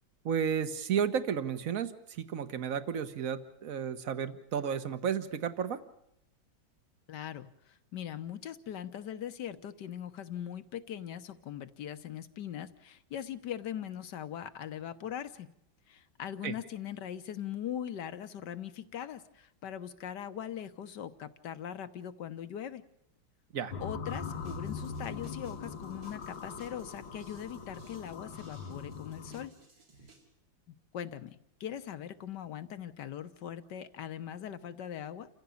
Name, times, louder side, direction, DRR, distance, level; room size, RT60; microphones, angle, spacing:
voice 1, 0.2-5.8 16.4-16.5 23.5-23.7, right 7 dB, 50° right, 11 dB, 1.5 m, -32 dB
voice 2, 7.1-15.5 15.9-22.8 23.8-29.5 30.9-35.3, left 9 dB, 65° left, 12 dB, 1.6 m, -41 dB
sound 1, 23.7-29.5, left 5 dB, 80° left, 2.3 m, -41 dB
sound 2, 24.1-30.3, right 2 dB, 75° right, 4.6 m, -57 dB
29.0 x 15.5 x 7.1 m, 0.77 s
omnidirectional pair, 2.1 m